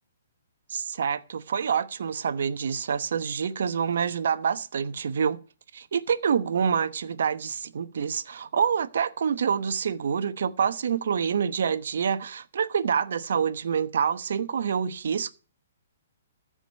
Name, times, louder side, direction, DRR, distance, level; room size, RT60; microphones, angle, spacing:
voice 1, 0.7-5.4 5.7-15.3, right 7 dB, 65° right, 1.0 m, -27 dB
14.5 x 5.0 x 9.2 m
hypercardioid pair, 135°, 0 cm